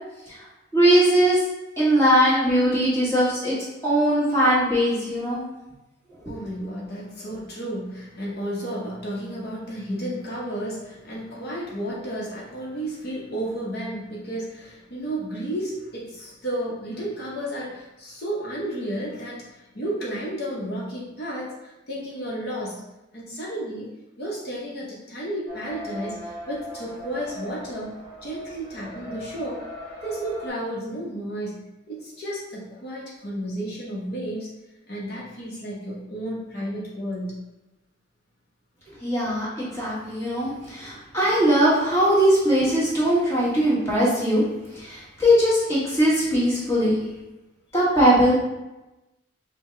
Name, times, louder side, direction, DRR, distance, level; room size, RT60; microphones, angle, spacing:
voice 1, 0.7-1.4 1.8-3.5 3.8-5.5 39.0-44.4 44.7-47.0 47.7-48.4, equal, 15° left, -9 dB, 1.4 m, -20 dB
voice 2, 6.3-22.7 23.1-23.9 24.2-27.9 28.2-29.6 30.0-31.5 31.9-34.5 34.9-37.4, right 1 dB, 50° left, -5 dB, 0.8 m, -32 dB
sound 1, 25.5-30.5, equal, 25° right, 1.1 m, -39 dB
5.5 x 2.2 x 3.2 m, 1.0 s
head